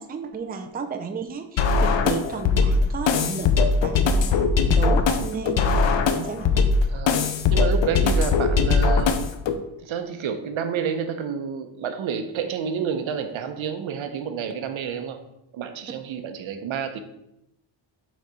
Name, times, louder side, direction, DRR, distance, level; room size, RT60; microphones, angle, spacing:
voice 1, 0.0-3.5 3.8-6.7, right 5 dB, 20° right, 5 dB, 0.5 m, -33 dB
sound 1, 1.6-9.6, left 4 dB, 70° left, 0.7 m, -20 dB
voice 2, 6.8-7.2 7.5-9.3 9.8-15.2 15.5-17.0, right 7 dB, 85° right, 8 dB, 0.9 m, -29 dB
6.6 x 4.2 x 4.8 m, 0.83 s
wide cardioid pair, 175°, 46 cm